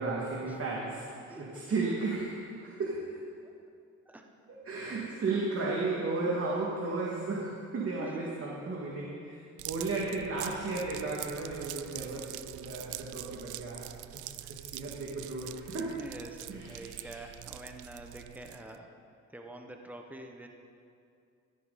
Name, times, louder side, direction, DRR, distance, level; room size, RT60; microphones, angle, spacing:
voice 1, 0.0-3.2 4.5-13.9 14.1-16.1 16.5-17.3, right 3 dB, 50° right, -4 dB, 2.4 m, -34 dB
voice 2, 1.3-1.6 4.1-4.2 14.4-14.5 15.9-18.9 19.3-20.5, right 1 dB, 5° right, 3 dB, 1.1 m, -47 dB
sound 1, 9.6-18.8, right 16 dB, 85° right, 0.5 m, -44 dB
15.5 x 13.5 x 4.2 m, 2.5 s
cardioid pair, 90°, 30 cm